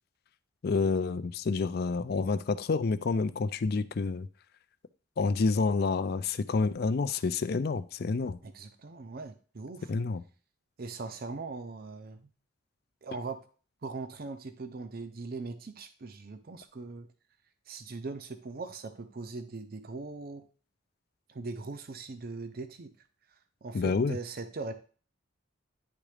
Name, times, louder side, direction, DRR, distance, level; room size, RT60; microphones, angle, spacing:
voice 1, 0.6-4.3 5.2-8.4 9.9-10.2 23.7-24.2, left 4 dB, 50° left, 0.4 m, -28 dB
voice 2, 8.4-9.9 10.8-12.3 13.0-13.4 13.8-17.1 17.7-20.5 21.3-22.9 23.6-24.7, right 3 dB, 50° right, 0.5 m, -40 dB
10.0 x 3.6 x 3.4 m
head